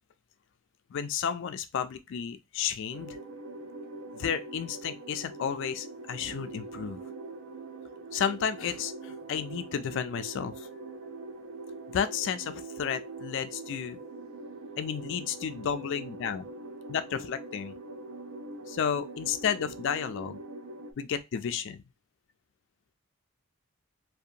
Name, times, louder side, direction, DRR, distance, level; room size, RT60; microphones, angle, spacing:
voice 1, 0.9-3.2 4.1-7.1 8.1-10.7 11.9-14.0 14.8-16.5 16.9-17.8 18.7-20.4 21.0-21.8, left 7 dB, 65° left, 0.3 m, -32 dB
sound 1, 2.9-20.9, right 2 dB, 70° right, 0.5 m, -43 dB
2.8 x 2.2 x 2.4 m
head